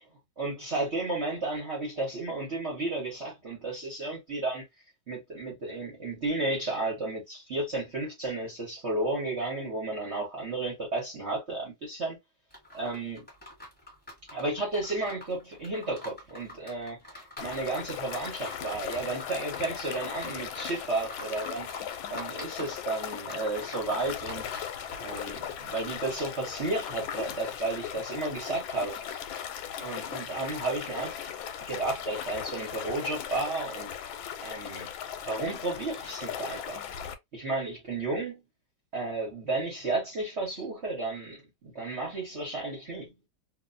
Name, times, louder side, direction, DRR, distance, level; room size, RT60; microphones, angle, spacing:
voice 1, 0.4-4.6 5.1-12.2 12.7-13.3 14.3-21.7 22.1-24.5 25.0-29.4 29.8-31.3 31.7-34.0 34.4-34.9 35.3-36.8 37.3-38.4 38.9-43.1, right 2 dB, 40° right, 1.1 m, -33 dB
sound 1, 12.5-25.4, left 1 dB, 5° left, 1.3 m, -46 dB
sound 2, 17.4-37.1, left 9 dB, 90° left, 1.4 m, -38 dB
2.9 x 2.6 x 2.6 m
omnidirectional pair, 2.1 m